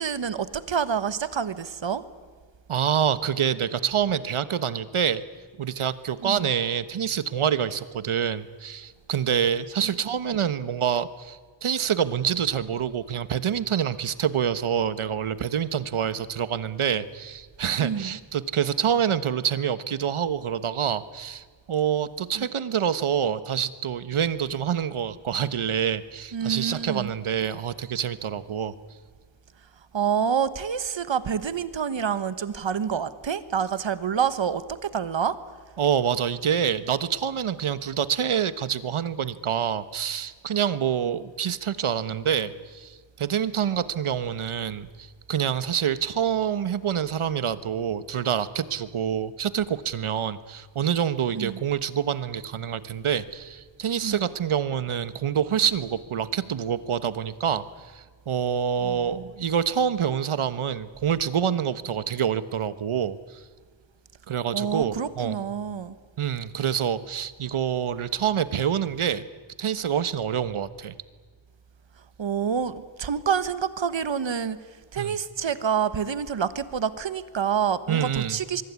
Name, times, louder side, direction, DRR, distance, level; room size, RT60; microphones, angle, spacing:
voice 1, 0.0-2.0 6.2-6.5 9.8-9.9 17.8-18.2 22.4-22.5 26.3-27.1 29.9-35.4 51.3-51.6 54.0-54.2 58.8-59.3 64.5-66.0 72.2-74.6 74.9-78.6, right 7 dB, 65° right, 1.4 m, -27 dB
voice 2, 2.7-5.2 5.6-28.7 35.8-57.6 57.9-63.4 64.3-65.4 66.2-69.3 69.6-70.9 75.0-75.1 77.9-78.4, right 8 dB, 80° right, 1.3 m, -26 dB
24.0 x 23.5 x 9.6 m
wide cardioid pair, 135°, 49 cm